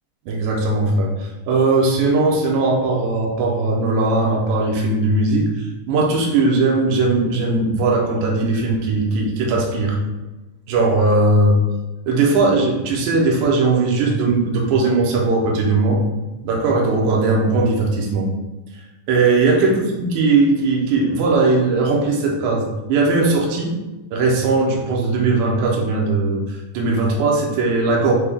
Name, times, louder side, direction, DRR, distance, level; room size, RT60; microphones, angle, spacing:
voice 1, 0.3-10.0 10.7-11.5 12.1-16.0 16.4-18.3 19.1-23.7 24.1-26.4 26.7-28.1, right 3 dB, 75° right, -1 dB, 2.0 m, -18 dB
5.9 x 2.2 x 3.5 m, 1.1 s
omnidirectional pair, 3.6 m